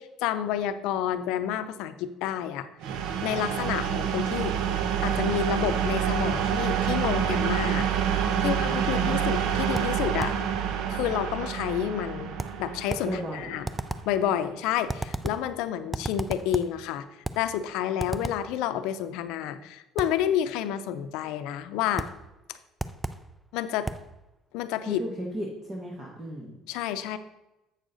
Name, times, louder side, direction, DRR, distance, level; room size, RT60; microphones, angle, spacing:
voice 1, 0.0-2.7 3.2-4.6 5.0-10.4 10.9-12.3 12.6-13.7 14.1-17.0 17.4-22.1 23.5-23.9 24.5-25.0 26.7-27.2, left 10 dB, 80° left, 11 dB, 0.6 m, -29 dB
sound 1, 2.8-14.4, right 8 dB, 70° right, 0.8 m, -28 dB
voice 2, 8.4-9.2 13.0-13.5 24.9-26.6, equal, 20° right, -2 dB, 1.2 m, -35 dB
sound 2, 9.8-10.5 12.4-13.2 13.6-14.2 14.9-15.5 15.9-16.8 17.2-17.5 18.0-18.5 20.0-20.2 22.0-22.2 22.8-23.3 23.9-24.1, right 2 dB, 5° right, 0.4 m, -34 dB
8.0 x 6.3 x 3.9 m, 0.98 s
cardioid pair, 115°, 0 cm